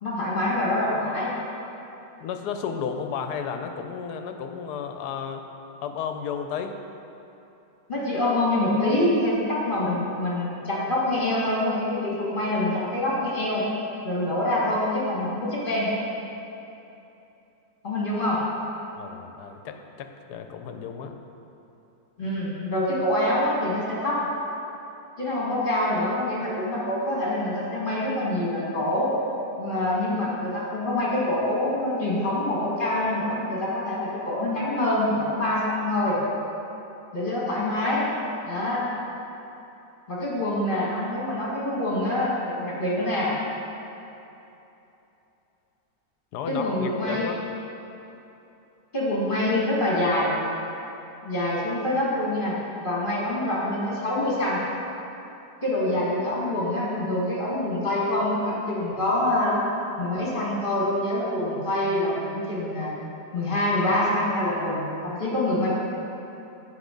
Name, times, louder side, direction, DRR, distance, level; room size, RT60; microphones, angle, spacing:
voice 1, 0.0-1.3 7.9-13.6 14.0-15.9 17.8-18.4 22.2-24.2 25.2-29.1 29.6-36.2 37.1-38.1 38.4-38.8 40.1-43.3 46.5-47.3 48.9-50.3 51.2-54.6 55.6-59.6 60.0-62.9 63.3-65.8, left 1 dB, 30° left, -6 dB, 1.8 m, -25 dB
voice 2, 2.2-5.4 5.8-6.7 19.0-21.2 46.3-47.4, left 7 dB, 75° left, 6 dB, 1.2 m, -33 dB
8.2 x 5.7 x 5.1 m, 2.9 s
omnidirectional pair, 1.8 m